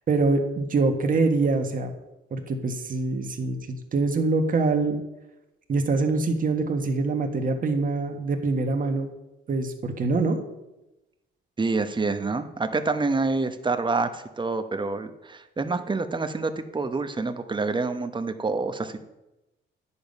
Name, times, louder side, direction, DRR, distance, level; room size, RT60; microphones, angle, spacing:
voice 1, 0.1-1.9 2.3-5.0 5.7-9.1 9.5-10.4, right 3 dB, 45° right, 4 dB, 1.5 m, -24 dB
voice 2, 11.6-19.0, right 3 dB, 25° right, 9 dB, 1.0 m, -27 dB
10.0 x 7.2 x 5.4 m, 0.96 s
cardioid pair, 90°, 20 cm